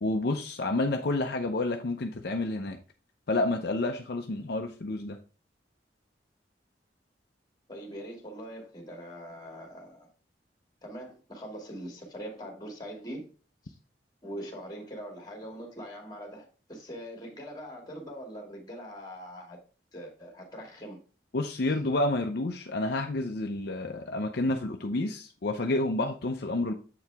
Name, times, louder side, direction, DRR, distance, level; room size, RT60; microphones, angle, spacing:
voice 1, 0.0-2.8 3.3-5.2 21.3-26.7, left 2 dB, 60° left, 0.6 m, -29 dB
voice 2, 7.7-10.1 10.8-13.3 13.6-13.8 14.2-19.6 19.9-21.0, equal, 25° left, 2.3 m, -42 dB
7.8 x 4.7 x 3.4 m
head